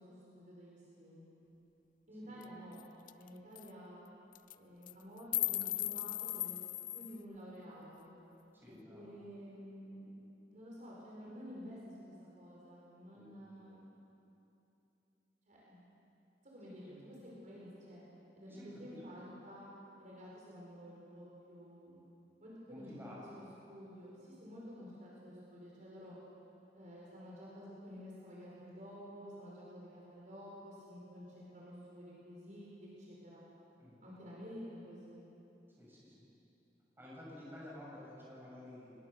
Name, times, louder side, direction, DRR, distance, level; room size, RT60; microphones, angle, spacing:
voice 1, 0.0-1.4 2.1-2.8 3.1-4.0 4.5-6.6 6.9-8.1 8.9-10.1 10.5-13.8 15.5-15.8 16.4-18.0 18.3-19.7 20.0-22.0 22.4-26.1 26.7-33.4 34.0-35.2, equal, 45° right, -5 dB, 4.8 m, -51 dB
sound 1, 2.4-2.5 2.8-2.9 3.1-3.3 3.5-3.7 4.3-4.5 4.9-7.2, left 16 dB, 50° left, 0.4 m, -37 dB
voice 2, 8.5-9.2 13.1-13.3 16.6-17.0 18.5-19.0 22.7-23.2 33.8-34.0 35.7-36.2 37.0-38.9, left 1 dB, 15° right, -6 dB, 7.1 m, -52 dB
22.0 x 20.5 x 6.9 m, 2.9 s
head